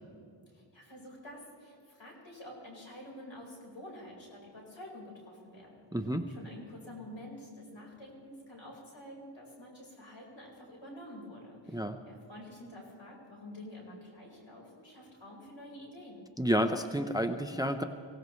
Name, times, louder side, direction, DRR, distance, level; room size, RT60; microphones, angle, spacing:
voice 1, 0.5-5.8 6.3-16.2, left 1 dB, 65° left, -2 dB, 4.6 m, -48 dB
voice 2, 5.9-6.3 11.7-12.0 16.4-17.8, equal, 10° right, 8 dB, 0.7 m, -30 dB
24.0 x 17.0 x 3.2 m, 2.3 s
wide cardioid pair, 55°, 47 cm